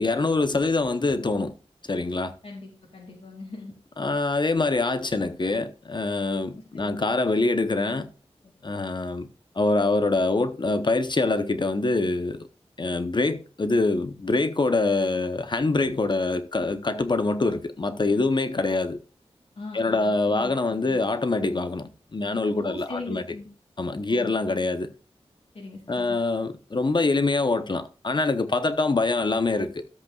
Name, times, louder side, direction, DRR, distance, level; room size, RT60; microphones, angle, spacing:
voice 1, 0.0-1.5 1.8-2.3 4.0-8.1 8.6-9.3 9.5-12.5 12.8-19.0 19.7-23.2 23.8-24.9 25.9-29.8, left 3 dB, 45° left, 0.9 m, -25 dB
voice 2, 2.4-3.7 6.7-7.0 19.6-21.0 22.6-23.5 24.1-24.3 25.5-26.2, left 2 dB, 65° left, 2.6 m, -40 dB
13.5 x 8.0 x 2.4 m
wide cardioid pair, 95°, 11 cm